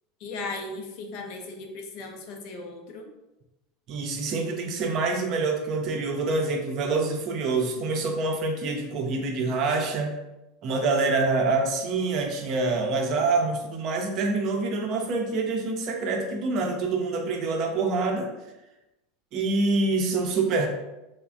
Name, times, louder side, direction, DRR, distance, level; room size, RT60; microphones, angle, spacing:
voice 1, 0.2-3.1, left 2 dB, 55° left, 3 dB, 0.4 m, -37 dB
voice 2, 3.9-10.1 10.6-18.3 19.3-20.7, right 3 dB, 45° right, 3 dB, 0.5 m, -26 dB
3.0 x 2.0 x 2.4 m, 0.97 s
figure-of-eight pair, 80°, 0 cm